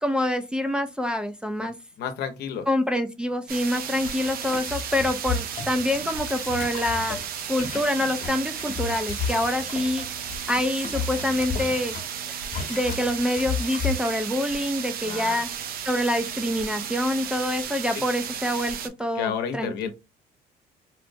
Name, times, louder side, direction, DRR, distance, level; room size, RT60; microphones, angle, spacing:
voice 1, 0.0-1.7 2.7-7.2 7.5-10.1 10.5-12.0 12.7-15.5 15.9-19.9, left 1 dB, 5° right, 0.4 m, -26 dB
voice 2, 2.0-2.7 15.0-15.4 17.9-18.0 19.1-19.9, left 8 dB, 80° left, 0.8 m, -31 dB
sound 1, 3.5-18.9, right 8 dB, 60° right, 0.6 m, -34 dB
sound 2, 4.0-12.1 12.4-13.9, left 6 dB, 50° left, 1.0 m, -34 dB
4.3 x 2.0 x 2.6 m
cardioid pair, 110°, 17 cm